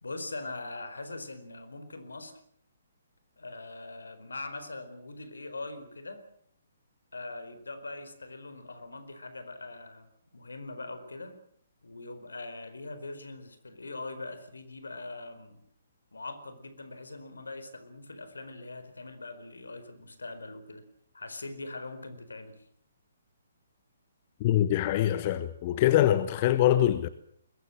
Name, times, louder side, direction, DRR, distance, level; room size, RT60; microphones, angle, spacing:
voice 1, 0.0-2.4 3.4-6.3 7.1-11.4 11.8-15.6 16.1-20.8 21.1-22.7, left 2 dB, 75° left, 4.6 m, -42 dB
voice 2, 24.4-27.1, left 12 dB, 35° left, 1.3 m, -24 dB
22.0 x 21.0 x 7.7 m
figure-of-eight pair, 130°, 0 cm